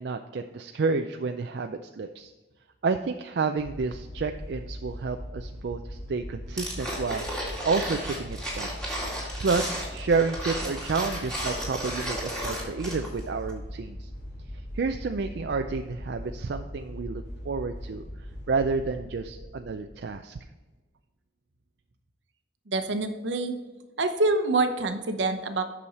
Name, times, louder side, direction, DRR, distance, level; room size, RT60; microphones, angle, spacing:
voice 1, 0.0-2.3 2.8-7.2 7.6-8.7 9.4-14.1 14.7-18.0 18.5-20.4, right 4 dB, 65° right, 6 dB, 0.4 m, -30 dB
sound 1, 3.6-20.1, equal, 75° left, 2.8 m, -40 dB
sound 2, 6.6-13.2 13.5-13.6, equal, 5° left, 2.3 m, -34 dB
voice 2, 22.7-23.5 24.0-25.6, right 2 dB, 80° right, 7 dB, 0.9 m, -26 dB
8.6 x 6.2 x 4.1 m, 1.2 s
head